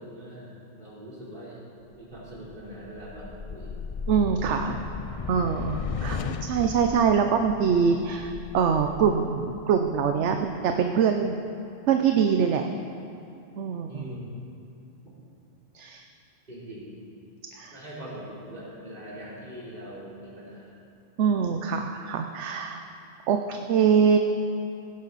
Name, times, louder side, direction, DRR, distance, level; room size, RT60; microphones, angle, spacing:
voice 1, 0.0-1.6 2.0-3.8 13.9-14.3 16.5-16.9 17.7-20.8, right 1 dB, 45° right, -8 dB, 3.9 m, -42 dB
sound 1, 2.1-10.6, left 5 dB, 60° left, 0.3 m, -36 dB
voice 2, 4.1-4.8 5.3-11.3 11.9-12.7 13.6-14.1 15.7-16.1 17.5-17.8 21.2-22.8 23.3-24.2, right 6 dB, 75° right, 5 dB, 0.9 m, -24 dB
17.0 x 10.5 x 4.1 m, 2.8 s
omnidirectional pair, 1.2 m